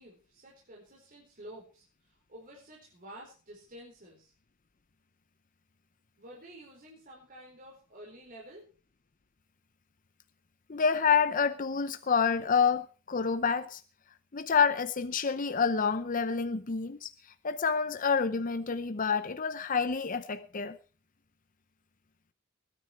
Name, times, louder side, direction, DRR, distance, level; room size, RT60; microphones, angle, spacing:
voice 1, 0.0-4.3 6.2-8.7, right 1 dB, 45° right, 4.7 m, -50 dB
voice 2, 10.7-13.8 14.3-17.1 17.4-20.8, left 6 dB, 40° left, 0.8 m, -28 dB
20.5 x 10.0 x 4.6 m
head